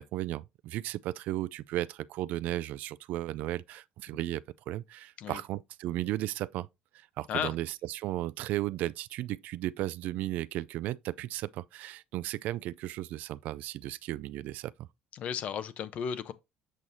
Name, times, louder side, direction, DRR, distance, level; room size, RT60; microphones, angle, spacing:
voice 1, 0.0-6.7 6.9-14.7, right 15 dB, 70° right, 0.3 m, -35 dB
voice 2, 15.1-16.3, left 8 dB, 50° left, 0.8 m, -34 dB
7.4 x 6.4 x 2.7 m
cardioid pair, 140°, 3 cm